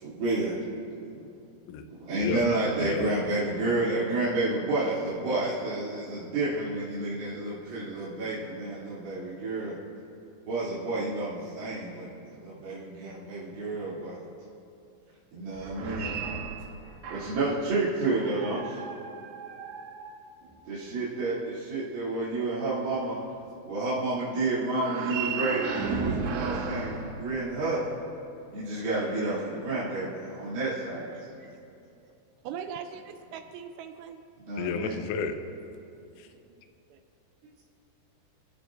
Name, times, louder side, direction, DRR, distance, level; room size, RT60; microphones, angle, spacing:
voice 1, 0.0-0.5 2.1-9.7 10.5-12.1 12.6-14.1 15.3-16.1 17.2-18.6 20.7-21.3 21.7-23.2 23.7-27.8 28.5-29.3 29.6-30.0 30.4-31.0 34.5-35.0, right 2 dB, 50° right, -12 dB, 4.4 m, -30 dB
voice 2, 2.2-2.5 2.8-3.1 34.6-35.4 36.2-36.3, left 6 dB, 85° left, 7 dB, 3.4 m, -31 dB
sound 1, 15.5-17.6 18.2-20.6 24.7-27.9, right 5 dB, 70° right, 3.1 m, -35 dB
voice 3, 32.4-34.2 36.4-36.5 36.9-37.0, right 7 dB, 90° right, 6 dB, 2.3 m, -40 dB
29.0 x 14.5 x 2.6 m, 2.7 s
omnidirectional pair, 5.6 m